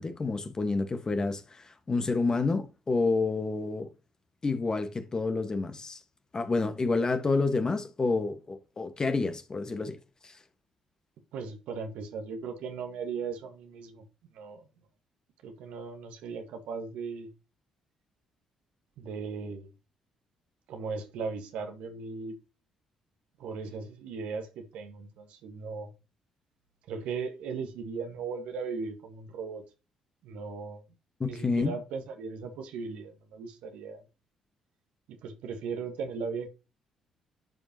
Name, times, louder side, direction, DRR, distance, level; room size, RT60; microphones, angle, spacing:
voice 1, 0.0-3.9 4.4-6.0 6.3-10.0 10.2-10.3 31.2-31.7, left 3 dB, 35° left, 1.6 m, -29 dB
voice 2, 11.3-14.0 14.3-14.6 15.4-17.3 19.0-19.7 20.7-22.3 23.4-25.9 26.9-29.6 30.2-30.8 31.2-34.0 35.1-36.5, right 5 dB, 70° right, 1.6 m, -37 dB
11.0 x 5.3 x 3.0 m
hypercardioid pair, 45°, 2 cm